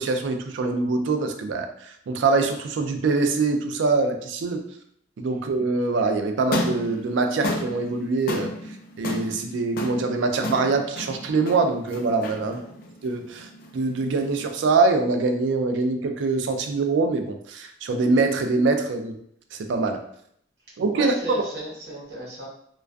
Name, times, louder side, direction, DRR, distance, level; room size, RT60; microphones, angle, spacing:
voice 1, 0.0-4.6 5.2-8.5 9.0-12.6 13.0-19.2 19.5-20.0 20.8-21.4, right 3 dB, 85° right, 5 dB, 0.3 m, -24 dB
sound 1, 6.4-14.7, left 1 dB, 50° left, 0.3 m, -33 dB
voice 2, 12.4-12.8 20.9-22.5, equal, 60° right, -6 dB, 0.9 m, -36 dB
2.4 x 2.3 x 2.2 m, 0.69 s
head